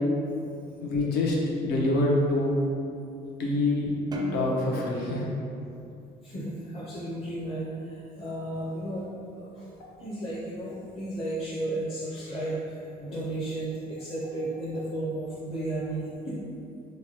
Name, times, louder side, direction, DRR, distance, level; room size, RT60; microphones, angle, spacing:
voice 1, 0.3-0.9 6.2-9.1 9.3-16.4, right 1 dB, 30° left, -6 dB, 0.6 m, -34 dB
voice 2, 0.8-2.6 3.4-3.9 4.3-5.3 9.8-9.9, left 2 dB, 75° left, -3 dB, 0.7 m, -26 dB
sound 1, 4.1-6.7, right 1 dB, 25° right, 0.4 m, -38 dB
3.1 x 2.1 x 4.2 m, 2.6 s
cardioid pair, 110°, 17 cm